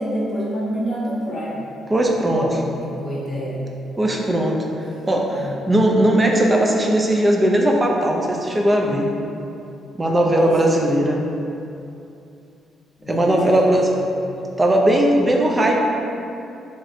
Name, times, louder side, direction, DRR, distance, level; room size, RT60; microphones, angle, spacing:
voice 1, 0.0-1.7 2.3-3.6 5.3-5.6 10.4-10.8 13.0-14.1, equal, 35° left, -6 dB, 0.6 m, -28 dB
voice 2, 1.9-2.5 4.0-4.6 5.1-9.1 9.9-11.2 13.1-13.9 14.6-15.8, right 1 dB, 20° right, 0 dB, 0.4 m, -18 dB
3.0 x 2.6 x 2.5 m, 2.7 s
cardioid pair, 90°, 0 cm